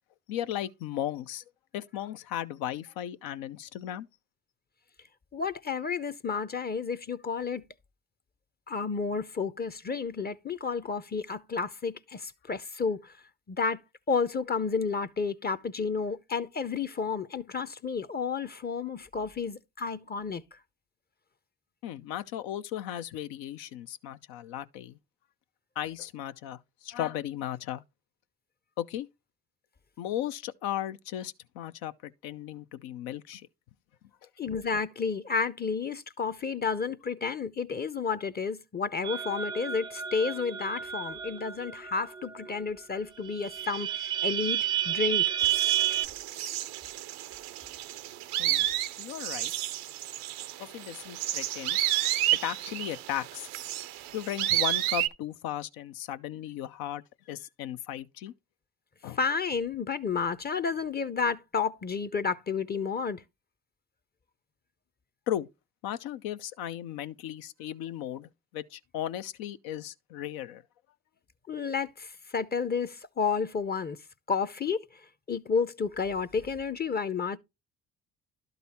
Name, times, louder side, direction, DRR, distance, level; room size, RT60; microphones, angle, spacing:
voice 1, 0.3-1.4 1.7-4.1 21.8-25.0 25.8-27.8 28.8-29.1 30.0-33.5 48.4-48.7 49.0-49.5 50.6-53.5 54.1-57.0 57.3-58.3 59.0-59.2 65.3-65.5 65.8-70.6, left 11 dB, 80° left, 0.6 m, -36 dB
voice 2, 5.3-7.6 8.7-13.1 13.5-13.8 14.1-20.4 34.4-44.6 44.8-45.4 59.2-63.2 71.5-74.0 74.3-74.8 75.3-77.4, left 5 dB, 25° left, 0.6 m, -31 dB
sound 1, 39.0-42.6 42.9-43.0 43.2-46.1, right 12 dB, 15° right, 0.4 m, -31 dB
sound 2, 45.4-55.1, right 14 dB, 85° right, 0.6 m, -31 dB
11.5 x 4.0 x 4.2 m
supercardioid pair, 60°, 36 cm